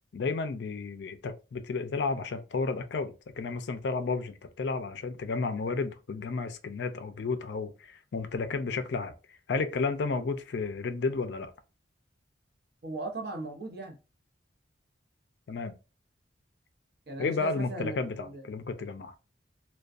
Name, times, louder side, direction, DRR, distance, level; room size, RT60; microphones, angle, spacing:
voice 1, 0.1-9.1 9.5-11.5 15.5-15.7 17.2-19.1, left 4 dB, 65° left, 0.4 m, -32 dB
voice 2, 12.8-14.0 17.1-18.4, right 2 dB, 55° right, 0.7 m, -38 dB
2.5 x 2.2 x 2.4 m
head